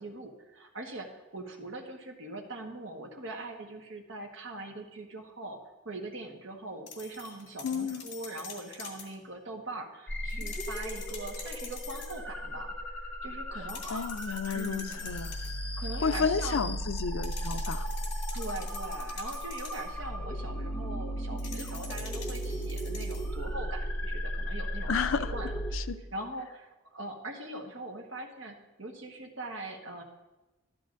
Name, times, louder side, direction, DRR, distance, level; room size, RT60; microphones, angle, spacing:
voice 1, 0.0-5.6 5.8-14.0 14.5-15.5 15.8-16.7 18.3-25.8 26.1-30.0, right 2 dB, 80° right, 2 dB, 1.4 m, -42 dB
sound 1, 6.9-9.1 10.3-12.2 13.7-15.6 17.2-19.9 21.4-23.4, left 6 dB, 60° left, 2.5 m, -45 dB
voice 2, 7.6-8.0 13.9-15.3 16.0-17.9 24.9-25.3 25.7-26.0, left 5 dB, 90° left, 11 dB, 0.5 m, -31 dB
sound 2, 10.1-25.8, equal, 10° left, 1.0 m, -36 dB
13.0 x 12.5 x 2.6 m, 1.1 s
head